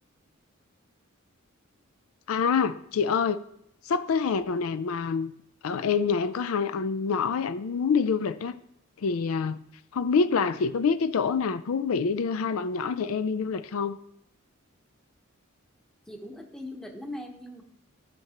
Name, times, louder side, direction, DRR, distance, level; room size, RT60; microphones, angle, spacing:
voice 1, 2.3-3.4 3.8-5.3 5.6-8.6 9.0-9.6 9.9-14.0, left 5 dB, 80° left, 0.4 m, -26 dB
voice 2, 16.1-17.6, left 1 dB, 5° left, 0.9 m, -40 dB
14.5 x 5.8 x 2.9 m
head